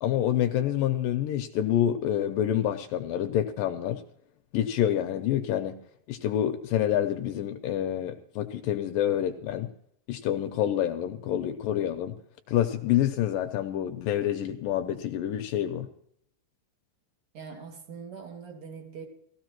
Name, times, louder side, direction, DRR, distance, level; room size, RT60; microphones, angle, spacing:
voice 1, 0.0-4.0 4.5-5.8 6.1-9.7 10.1-12.2 12.5-15.9, left 11 dB, 80° left, 6 dB, 2.0 m, -27 dB
voice 2, 17.3-19.1, right 6 dB, 40° right, 2 dB, 2.4 m, -42 dB
18.5 x 15.0 x 3.0 m, 0.67 s
omnidirectional pair, 4.8 m